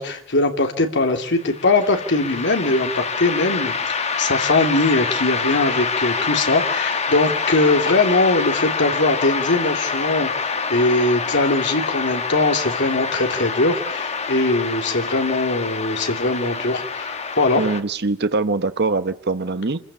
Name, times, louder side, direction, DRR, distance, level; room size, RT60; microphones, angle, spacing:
voice 1, 0.0-17.6, left 2 dB, 55° left, 5 dB, 2.8 m, -21 dB
sound 1, 1.4-17.8, left 5 dB, 30° left, 1.4 m, -26 dB
voice 2, 17.6-19.8, right 3 dB, 50° right, 11 dB, 0.9 m, -22 dB
26.5 x 15.5 x 10.0 m, 0.70 s
head